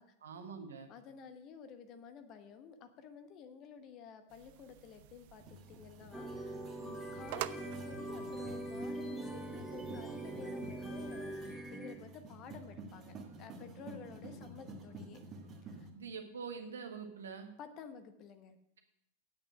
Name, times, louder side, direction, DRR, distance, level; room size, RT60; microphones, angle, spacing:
voice 1, 0.2-0.9 15.9-17.5, right 5 dB, 65° right, 5 dB, 1.4 m, -45 dB
voice 2, 0.9-15.2 15.6-15.9 17.6-18.6, left 6 dB, 35° left, 9 dB, 1.0 m, -52 dB
sound 1, 4.3-11.5, right 16 dB, 50° right, 0.4 m, -50 dB
sound 2, 5.4-15.9, right 2 dB, 30° right, 1.6 m, -51 dB
sound 3, 6.1-11.9, right 1 dB, 5° right, 1.4 m, -42 dB
9.1 x 8.2 x 6.0 m, 0.79 s
figure-of-eight pair, 90°, 0 cm